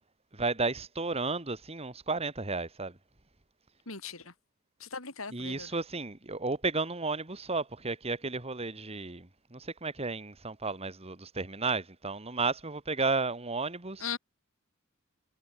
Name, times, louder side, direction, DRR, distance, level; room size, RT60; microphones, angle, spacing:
voice 1, 0.3-3.0 5.3-14.0, right 3 dB, 30° right, 2.1 m, -33 dB
voice 2, 3.9-4.3 4.8-5.7 14.0-14.2, left 5 dB, 75° left, 6.2 m, -38 dB
head